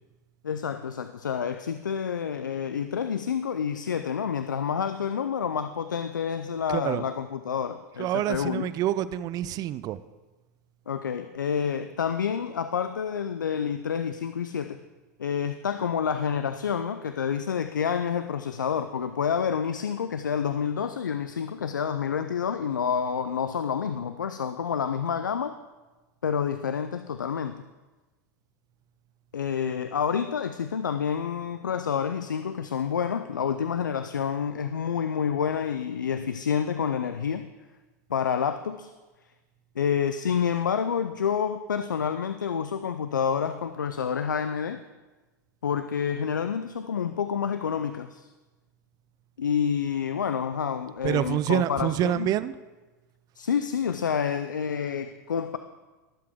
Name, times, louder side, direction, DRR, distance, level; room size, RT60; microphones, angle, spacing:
voice 1, 0.4-8.7 10.9-14.8 15.2-25.5 26.2-27.6 29.3-37.5 38.1-38.9 39.8-44.8 45.6-48.3 49.4-52.3 53.4-55.6, left 7 dB, 90° left, 10 dB, 0.5 m, -28 dB
voice 2, 6.7-7.0 7.9-10.0 51.0-52.5, right 12 dB, 40° right, 16 dB, 0.6 m, -27 dB
21.0 x 7.7 x 3.6 m, 1.2 s
hypercardioid pair, 95°, 10 cm